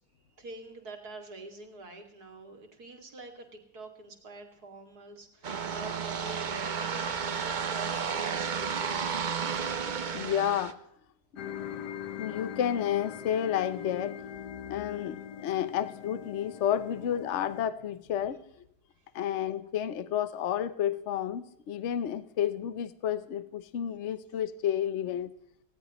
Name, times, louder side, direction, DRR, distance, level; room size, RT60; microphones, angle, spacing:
voice 1, 0.4-9.1, right 2 dB, 65° right, 3 dB, 3.0 m, -46 dB
sound 1, 5.4-10.7, right 6 dB, 45° right, 0.6 m, -32 dB
voice 2, 10.1-10.8 12.2-14.2 14.7-18.4 19.1-25.3, left 10 dB, 50° left, 14 dB, 1.0 m, -31 dB
sound 2, 11.4-17.7, left 9 dB, 75° left, 1.4 m, -41 dB
19.5 x 17.0 x 3.1 m, 0.74 s
omnidirectional pair, 1.8 m